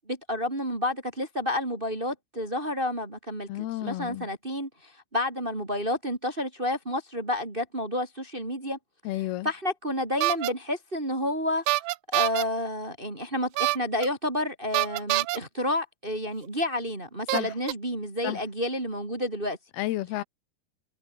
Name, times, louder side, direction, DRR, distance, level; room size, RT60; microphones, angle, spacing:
voice 1, 0.1-8.8 9.4-11.6 12.1-19.6, left 1 dB, 20° right, 1.7 m, -30 dB
voice 2, 3.5-4.3 9.1-9.5 17.3-17.5 18.2-18.4 19.8-20.2, left 16 dB, 75° left, 2.7 m, -31 dB
sound 1, 10.2-10.5 11.7-12.4 13.6-14.1 14.7-15.4 16.4-16.5 17.3-17.7, right 21 dB, 85° right, 2.7 m, -25 dB
omnidirectional pair, 4.9 m